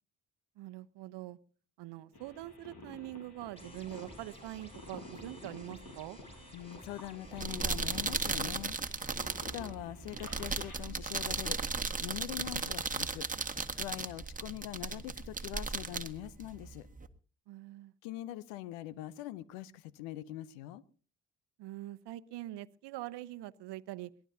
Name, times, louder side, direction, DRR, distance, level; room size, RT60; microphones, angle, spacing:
voice 1, 0.6-1.4 1.8-6.2 17.5-17.9 21.6-24.1, right 15 dB, 70° right, 15 dB, 0.9 m, -44 dB
sound 1, 2.1-10.8, left 1 dB, 60° left, 6.4 m, -51 dB
sound 2, 3.6-8.0, equal, 15° left, 6.9 m, -54 dB
voice 2, 6.5-8.8 9.4-11.6 12.0-13.3 13.8-16.9 18.0-20.8, left 14 dB, 85° left, 20 dB, 0.8 m, -43 dB
sound 3, 7.2-17.1, right 4 dB, 20° right, 1.6 m, -36 dB
23.0 x 18.5 x 2.8 m, 0.40 s
hypercardioid pair, 45°, 43 cm